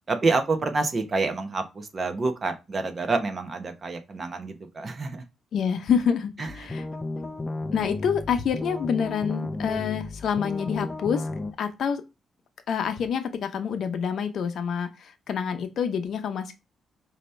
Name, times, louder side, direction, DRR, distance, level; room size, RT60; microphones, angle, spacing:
voice 1, 0.1-5.2 6.4-6.8, right 3 dB, 35° right, 0.9 m, -28 dB
voice 2, 5.5-6.8 7.7-11.3 11.6-12.0 12.7-16.6, left 7 dB, 65° left, 0.8 m, -27 dB
sound 1, 6.5-11.5, left 2 dB, 20° left, 0.5 m, -33 dB
5.1 x 2.8 x 3.2 m
cardioid pair, 130°, 0 cm